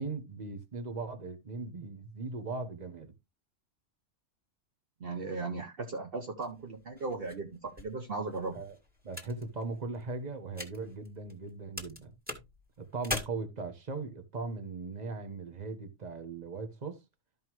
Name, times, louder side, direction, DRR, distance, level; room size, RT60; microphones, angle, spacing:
voice 1, 0.0-3.1 8.5-8.8 9.0-12.1 12.8-17.0, right 3 dB, 35° right, 1.4 m, -39 dB
voice 2, 5.0-8.5, right 3 dB, 55° right, 1.2 m, -37 dB
sound 1, 6.4-11.5 11.8-13.2, left 2 dB, 10° right, 1.9 m, -42 dB
13.0 x 5.5 x 3.0 m
omnidirectional pair, 1.2 m